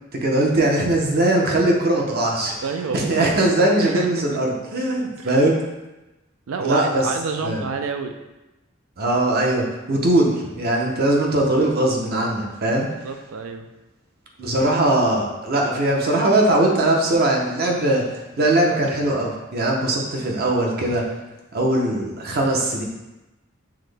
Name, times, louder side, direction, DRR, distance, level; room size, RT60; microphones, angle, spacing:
voice 1, 0.1-2.5 2.9-5.5 6.6-7.1 7.4-7.6 9.0-12.9 14.4-21.0 21.5-22.8, right 1 dB, 50° right, -1 dB, 0.7 m, -20 dB
voice 2, 2.6-3.3 3.8-4.4 5.2-5.3 6.5-8.2 13.0-13.7, right 5 dB, 85° right, 6 dB, 0.4 m, -29 dB
5.7 x 2.1 x 3.3 m, 1.0 s
head